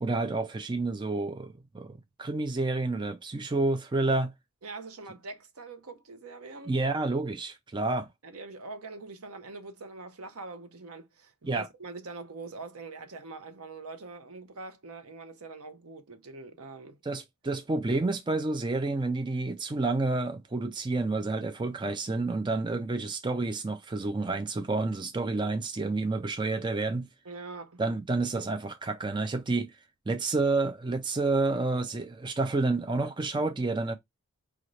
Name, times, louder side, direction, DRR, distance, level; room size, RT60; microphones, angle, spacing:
voice 1, 0.0-4.3 6.7-8.1 11.4-11.7 17.0-27.1 27.8-29.7 30.1-34.0, right 3 dB, 20° right, 0.4 m, -29 dB
voice 2, 4.6-6.8 8.2-17.0 27.2-27.8, right 3 dB, 85° right, 0.8 m, -43 dB
4.9 x 2.6 x 3.2 m
head